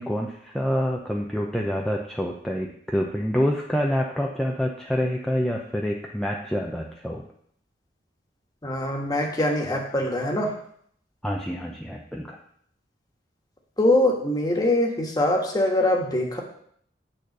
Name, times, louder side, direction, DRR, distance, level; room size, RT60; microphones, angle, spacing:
voice 1, 0.0-7.2 11.2-12.4, equal, 5° left, -1 dB, 0.6 m, -27 dB
voice 2, 8.6-10.5 13.8-16.4, left 1 dB, 20° left, 0 dB, 1.5 m, -23 dB
9.4 x 4.3 x 6.5 m, 0.65 s
head